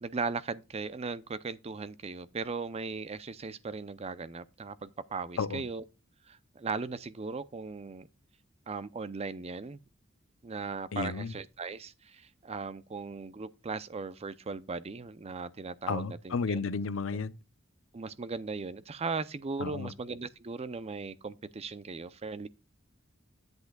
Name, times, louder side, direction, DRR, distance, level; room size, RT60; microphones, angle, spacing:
voice 1, 0.0-5.8 6.3-8.1 8.7-9.8 10.4-16.7 17.9-22.5, right 4 dB, 30° right, 0.5 m, -38 dB
voice 2, 10.9-11.3 15.9-17.3 19.6-19.9, left 4 dB, 75° left, 0.6 m, -32 dB
10.5 x 8.1 x 2.2 m
head